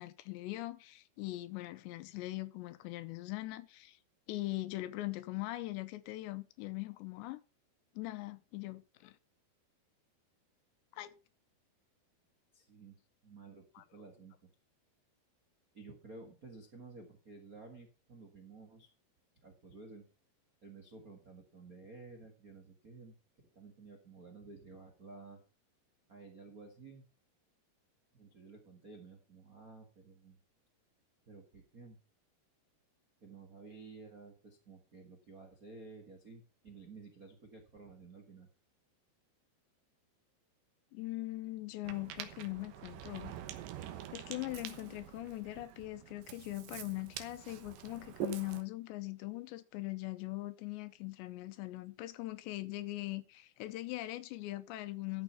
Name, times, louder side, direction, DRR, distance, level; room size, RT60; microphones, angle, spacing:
voice 1, 0.0-4.0 4.3-7.4 8.0-9.1 10.9-11.1 13.8-13.9 40.9-43.3 44.1-55.2, left 18 dB, 90° left, 3.1 m, -41 dB
voice 2, 12.5-13.0 13.2-13.6 13.9-14.3 15.7-18.9 19.4-20.1 20.6-23.1 23.5-25.4 26.1-27.0 28.1-30.4 31.3-32.0 33.2-38.5, right 3 dB, 60° right, 0.9 m, -53 dB
Ocean, 41.8-48.6, right 11 dB, 85° right, 3.4 m, -45 dB
13.5 x 6.4 x 5.6 m
omnidirectional pair, 5.0 m